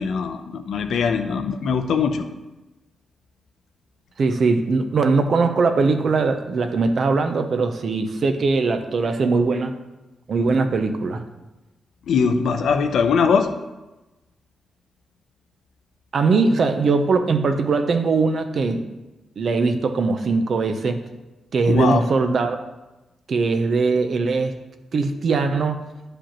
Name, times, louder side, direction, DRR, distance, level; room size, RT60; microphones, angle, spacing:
voice 1, 0.0-2.3 12.1-13.5 21.7-22.0, left 6 dB, 75° left, 7 dB, 0.6 m, -21 dB
voice 2, 4.2-9.8 10.3-11.2 16.1-18.8 19.4-21.0 21.5-22.6 23.3-24.6 24.9-25.8, right 4 dB, 45° right, 7 dB, 0.6 m, -20 dB
11.5 x 5.0 x 3.0 m, 1.1 s
wide cardioid pair, 170°, 0 cm